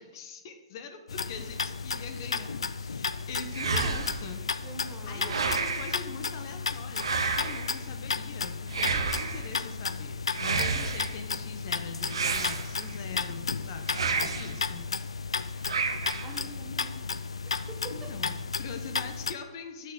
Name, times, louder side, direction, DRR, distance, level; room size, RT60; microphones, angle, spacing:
voice 1, 0.0-4.4 5.1-14.9 17.9-19.9, left 5 dB, 50° left, 7 dB, 1.0 m, -43 dB
sound 1, 1.1-19.3, left 5 dB, 85° left, 0.4 m, -34 dB
sound 2, 3.5-4.3 5.2-6.0 7.0-7.8 8.7-9.5 10.3-11.2 12.1-13.0 13.9-14.6 15.7-16.4, right 5 dB, 75° right, 0.7 m, -30 dB
voice 2, 4.6-5.5 16.2-17.0 17.7-18.1, right 3 dB, 20° right, 3 dB, 1.0 m, -44 dB
6.7 x 4.1 x 6.6 m, 1.1 s
hypercardioid pair, 130°, 3 cm